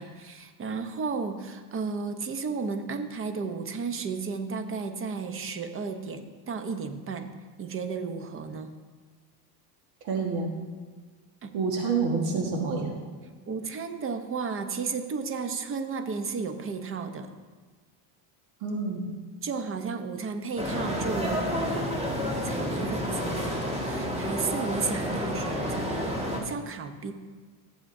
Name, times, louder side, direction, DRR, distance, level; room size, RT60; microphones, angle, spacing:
voice 1, 0.0-7.3 7.6-8.7 11.4-11.5 13.5-17.3 19.4-26.1 26.4-27.1, right 4 dB, 30° right, 8 dB, 0.8 m, -33 dB
voice 2, 10.0-10.5 11.5-12.9 18.6-19.1, right 4 dB, 80° right, 0 dB, 1.7 m, -28 dB
sound 1, 20.6-26.4, equal, 15° right, 1.8 m, -30 dB
14.5 x 8.0 x 2.7 m, 1.5 s
cardioid pair, 115°, 46 cm